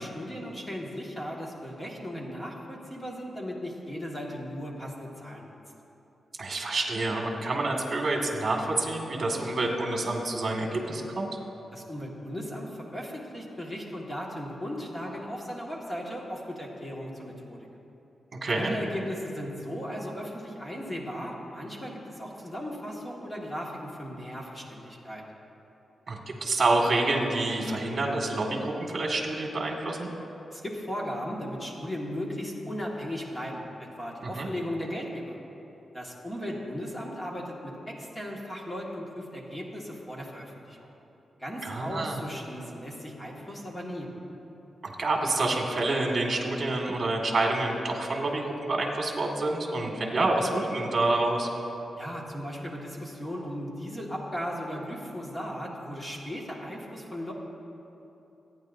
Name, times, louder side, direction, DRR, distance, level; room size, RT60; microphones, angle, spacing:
voice 1, 0.0-5.5 11.7-17.7 18.6-25.2 30.5-35.4 35.9-40.9 41.4-44.1 52.0-57.3, equal, 15° left, -2 dB, 1.8 m, -37 dB
voice 2, 6.4-11.3 18.4-18.7 26.1-30.1 34.2-34.5 41.6-42.2 44.8-51.5, right 2 dB, 40° right, 0 dB, 2.0 m, -28 dB
27.0 x 9.6 x 2.7 m, 3.0 s
wide cardioid pair, 120°, 0 cm